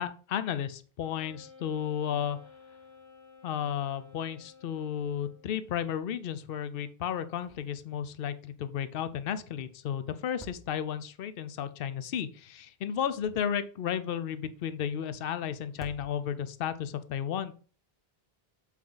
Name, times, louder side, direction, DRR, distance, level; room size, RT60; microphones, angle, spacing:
voice 1, 0.0-2.4 3.4-17.5, left 9 dB, 65° left, 12 dB, 0.8 m, -33 dB
Wind instrument woodwind instrument, 1.0-5.6, left 5 dB, 35° left, 1.7 m, -54 dB
sound 1, 7.4-7.9 8.2-8.3 10.2-11.2 12.9-13.8 15.6-16.6, right 1 dB, ahead, 1.0 m, -52 dB
7.4 x 4.6 x 3.8 m, 0.39 s
omnidirectional pair, 1.0 m